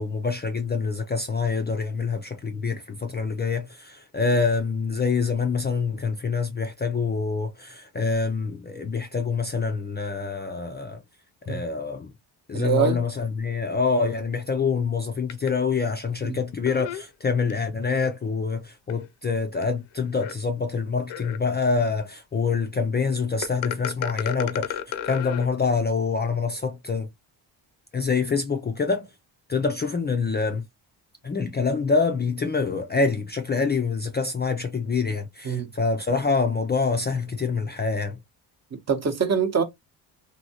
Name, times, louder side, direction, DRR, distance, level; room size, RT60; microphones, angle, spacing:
voice 1, 0.0-11.0 11.5-12.1 12.5-27.1 27.9-29.1 29.5-30.6 31.2-38.2, left 4 dB, 25° left, 0.4 m, -26 dB
voice 2, 12.5-13.0 16.2-16.4 35.4-35.7 38.9-39.6, right 6 dB, 35° right, 0.8 m, -24 dB
sound 1, 15.3-15.5 16.7-17.5 18.0-18.1 18.9-19.0 19.6-19.7 20.2-20.3 21.1-21.6 23.4-25.5, left 10 dB, 80° left, 0.6 m, -32 dB
3.0 x 2.7 x 2.7 m
cardioid pair, 80°, 45 cm